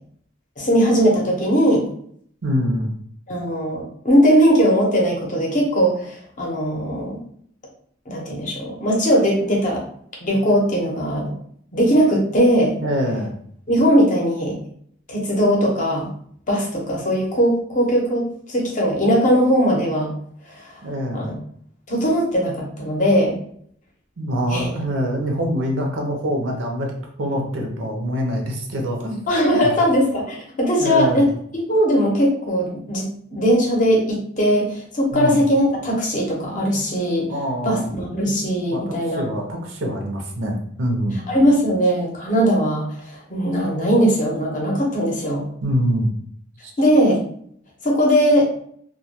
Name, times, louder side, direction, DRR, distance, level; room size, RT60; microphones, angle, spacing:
voice 1, 0.6-1.9 3.3-7.2 8.1-9.8 10.2-11.3 11.7-12.7 13.7-14.6 15.1-16.1 16.5-20.1 20.5-20.7 21.1-21.3 21.9-23.4 24.5-24.7 29.3-33.0 33.3-37.3 37.6-39.2 41.3-45.4 46.8-47.2 47.8-48.5, equal, 40° left, -1 dB, 0.7 m, -19 dB
voice 2, 2.4-2.9 12.8-13.3 20.8-21.3 24.2-26.9 27.2-29.2 30.8-31.2 35.1-35.4 37.3-37.9 38.7-41.2 45.6-46.1 46.6-46.7, equal, 75° right, 2 dB, 0.6 m, -24 dB
2.2 x 2.1 x 2.8 m, 0.64 s
head